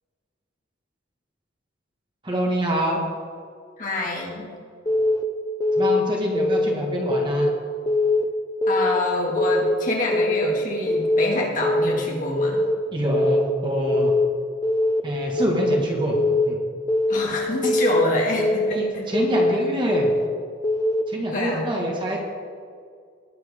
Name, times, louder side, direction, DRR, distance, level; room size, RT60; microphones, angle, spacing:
voice 1, 2.2-3.0 5.8-7.5 12.9-14.1 15.0-16.2 16.5-16.6 17.6-17.7 18.7-20.1 21.1-22.2, equal, 25° right, -1 dB, 1.8 m, -25 dB
voice 2, 3.8-4.5 8.7-12.6 17.1-19.1 21.3-21.7, left 2 dB, 45° left, -2 dB, 2.2 m, -26 dB
Keyboard (musical) / Alarm, 4.9-5.2 5.6-6.0 6.4-6.7 7.1-7.5 7.9-8.2 8.6-9.0 9.4-9.7 10.1-10.5 10.9-11.2 11.6-12.0 12.4-12.8 13.1-13.5 13.9-14.3 14.6-15.0 15.4-15.8 16.1-16.5 16.9-17.3 17.6-18.0 18.4-18.8 19.1-19.5 19.9-20.3 20.6-21.0, left 2 dB, 20° left, 0.6 m, -21 dB
19.0 x 7.7 x 3.7 m, 2.1 s
head